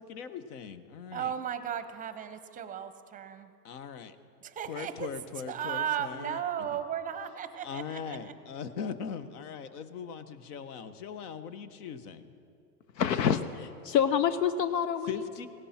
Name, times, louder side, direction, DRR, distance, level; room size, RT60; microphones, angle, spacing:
voice 1, 0.0-1.3 3.6-4.1 4.7-6.4 7.6-12.3 15.1-15.5, left 6 dB, 65° left, 12 dB, 1.2 m, -40 dB
voice 2, 1.1-3.5 4.4-5.1 5.5-8.3, right 9 dB, 15° right, 11 dB, 0.7 m, -35 dB
voice 3, 13.0-15.3, left 8 dB, 85° left, 12 dB, 0.9 m, -27 dB
18.0 x 17.0 x 4.3 m, 2.4 s
hypercardioid pair, 125°, 49 cm